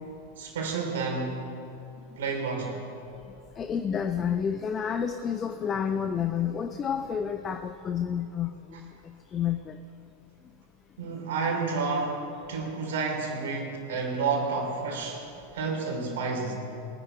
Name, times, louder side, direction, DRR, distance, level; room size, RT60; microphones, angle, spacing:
voice 1, 0.4-1.5 2.2-2.8 11.0-15.2 15.5-16.5, right 4 dB, 55° right, 2 dB, 2.9 m, -30 dB
voice 2, 3.6-8.9 9.3-9.8, left 7 dB, 25° left, 9 dB, 0.6 m, -30 dB
21.0 x 10.0 x 4.5 m, 2.6 s
figure-of-eight pair, 90°, 0 cm